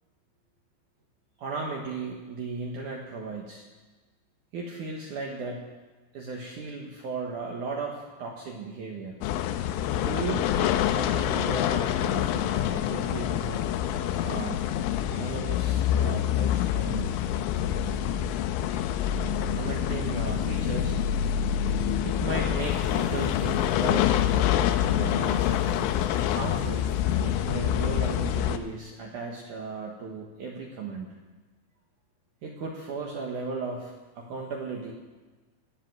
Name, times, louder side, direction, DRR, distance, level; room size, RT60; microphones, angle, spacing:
voice 1, 1.4-3.7 4.5-5.7 6.1-9.2 9.8-13.7 14.2-14.7 15.1-17.1 19.5-21.0 22.0-25.9 26.3-26.9 27.2-31.1 32.4-34.9, right 3 dB, 75° right, 0 dB, 1.8 m, -36 dB
sound 1, 9.2-28.6, left 11 dB, 90° left, 3.1 m, -26 dB
sound 2, 22.6-27.5, equal, 45° right, 1.2 m, -44 dB
15.5 x 7.6 x 9.4 m, 1.3 s
omnidirectional pair, 5.4 m